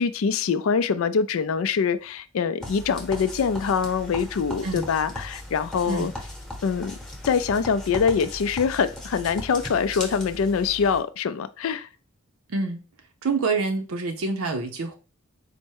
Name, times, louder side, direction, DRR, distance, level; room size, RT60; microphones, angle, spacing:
voice 1, 0.0-6.1 6.6-7.0 7.2-11.9, left 6 dB, 80° left, 0.4 m, -24 dB
sound 1, 2.6-11.0, left 1 dB, 5° left, 0.9 m, -38 dB
voice 2, 12.5-12.8 13.2-14.9, right 4 dB, 85° right, 0.6 m, -26 dB
4.3 x 2.0 x 4.6 m
head